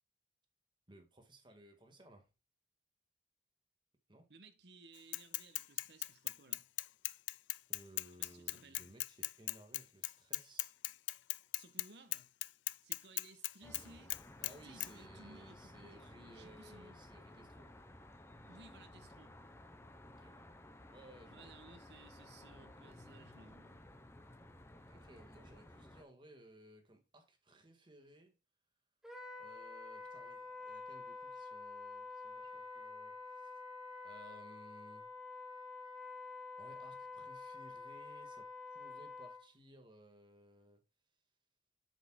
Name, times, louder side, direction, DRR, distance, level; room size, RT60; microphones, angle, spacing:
voice 1, 0.9-2.3 4.1-4.3 7.7-10.7 14.4-17.7 20.1-20.4 20.9-21.6 24.9-28.4 29.4-33.5 34.0-35.1 36.6-40.8, right 1 dB, 25° right, 1.6 m, -60 dB
voice 2, 4.3-6.7 8.2-8.9 11.6-12.3 12.8-14.2 14.6-17.0 18.5-19.3 21.3-23.8, right 3 dB, 65° right, 1.3 m, -59 dB
Bicycle / Mechanisms, 5.1-11.9 12.1-13.8 14.1-14.5 14.8-14.9, left 19 dB, 85° left, 0.3 m, -38 dB
Traffic noise roadway noise, 13.6-26.0, left 1 dB, 15° left, 0.8 m, -56 dB
Wind instrument woodwind instrument, 29.0-39.5, left 4 dB, 5° right, 1.4 m, -48 dB
8.0 x 7.3 x 2.2 m
head